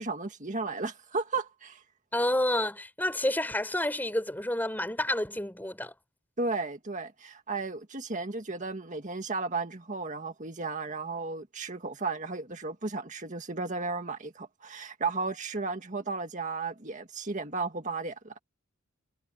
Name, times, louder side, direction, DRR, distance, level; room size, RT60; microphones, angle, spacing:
voice 1, 0.0-1.8 6.4-18.4, right 3 dB, 35° right, 1.9 m, -34 dB
voice 2, 2.1-5.9, left 1 dB, 10° left, 4.6 m, -29 dB
head